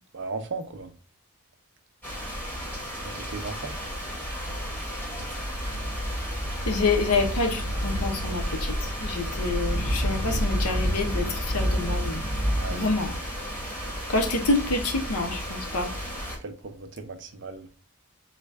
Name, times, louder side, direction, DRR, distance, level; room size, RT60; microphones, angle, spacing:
voice 1, 0.1-0.9 3.1-3.8 12.5-13.0 16.4-17.7, right 4 dB, 55° right, 0.6 m, -36 dB
sound 1, 2.0-16.4, equal, 10° left, 1.3 m, -30 dB
voice 2, 6.7-8.7 9.0-12.2 12.7-13.1 14.1-15.9, left 3 dB, 80° left, 0.9 m, -27 dB
4.0 x 2.5 x 3.2 m
head